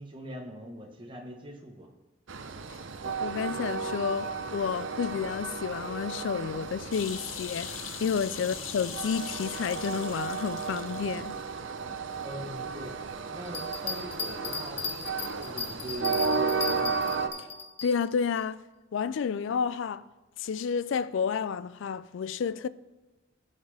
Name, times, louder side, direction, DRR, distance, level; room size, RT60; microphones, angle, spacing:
voice 1, 0.0-1.9 8.4-8.5 11.9-12.9 13.3-17.0, right 1 dB, 25° right, 1.2 m, -42 dB
Train, 2.3-17.3, right 5 dB, 70° right, 0.6 m, -34 dB
voice 2, 3.0-11.4 17.8-18.6 18.9-20.0 20.4-22.7, left 6 dB, 70° left, 0.3 m, -30 dB
sound 1, 6.9-11.4 11.8-11.9, left 9 dB, 90° left, 0.7 m, -41 dB
Bell, 13.4-17.9 18.4-18.5, left 5 dB, 30° left, 0.8 m, -35 dB
14.5 x 5.7 x 3.4 m
head